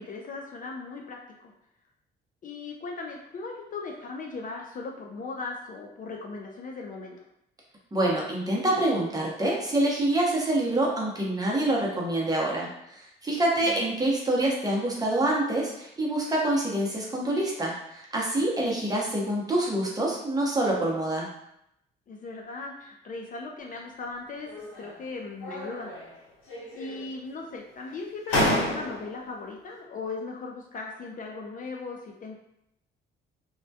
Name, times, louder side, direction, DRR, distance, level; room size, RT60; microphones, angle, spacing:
voice 1, 0.0-1.5 2.4-7.2 13.3-13.8 18.5-18.7 22.1-24.5 24.8-25.9 26.8-32.3, left 3 dB, 45° left, 0 dB, 0.4 m, -38 dB
voice 2, 7.9-21.3, right 1 dB, 20° right, -3 dB, 0.7 m, -26 dB
sound 1, 24.4-25.0 25.4-26.2 26.5-27.2 27.9-28.0 28.3-29.2, left 1 dB, 80° left, 0.9 m, -30 dB
2.2 x 2.1 x 2.6 m, 0.78 s
cardioid pair, 90°, 20 cm